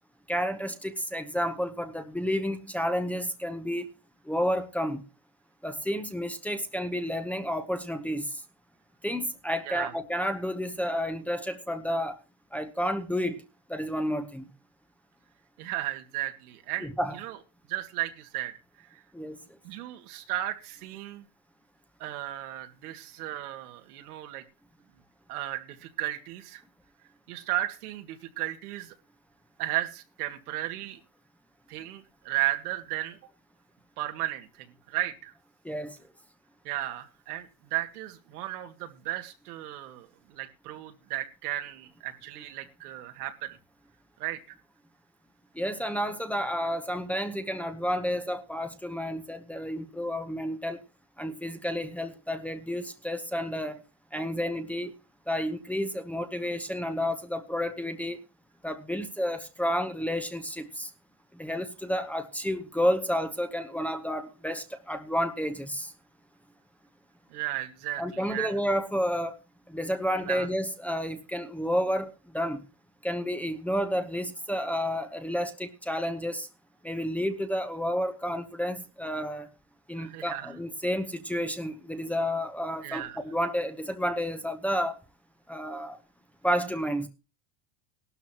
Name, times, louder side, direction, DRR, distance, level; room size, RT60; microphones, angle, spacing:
voice 1, 0.3-3.9 4.2-5.0 5.6-8.4 9.0-12.2 12.5-13.4 13.7-14.5 16.8-17.2 19.1-19.4 35.6-36.0 45.5-50.8 51.2-53.8 54.1-54.9 55.3-58.2 58.6-60.9 61.3-65.9 68.0-69.4 69.7-72.6 73.0-76.5 76.8-79.5 79.9-84.9 85.5-86.0 86.4-87.1, equal, 5° left, 5 dB, 0.9 m, -31 dB
voice 2, 15.6-17.4 17.7-18.5 18.9-19.0 19.6-21.3 22.0-24.4 25.3-26.6 27.3-28.9 29.6-31.0 31.7-33.2 34.0-35.3 36.6-43.6 44.2-44.4 67.3-68.5 70.2-70.5 80.0-80.6 82.8-83.2, right 15 dB, 85° right, 6 dB, 2.3 m, -34 dB
18.0 x 12.5 x 3.0 m, 0.31 s
supercardioid pair, 155°, 44 cm